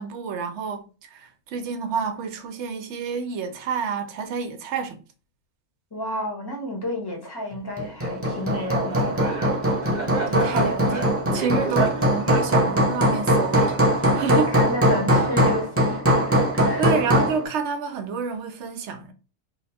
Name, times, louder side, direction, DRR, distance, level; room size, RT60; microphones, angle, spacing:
voice 1, 0.0-5.0 10.3-14.5 16.8-19.1, right 5 dB, 70° right, 0.9 m, -29 dB
voice 2, 5.9-9.4 14.1-16.9, left 1 dB, 20° left, 0.8 m, -31 dB
Hammer, 7.8-17.4, equal, 20° right, 0.4 m, -21 dB
Laughter, 8.3-14.2, right 4 dB, 45° right, 0.7 m, -33 dB
2.8 x 2.1 x 4.1 m
omnidirectional pair, 1.3 m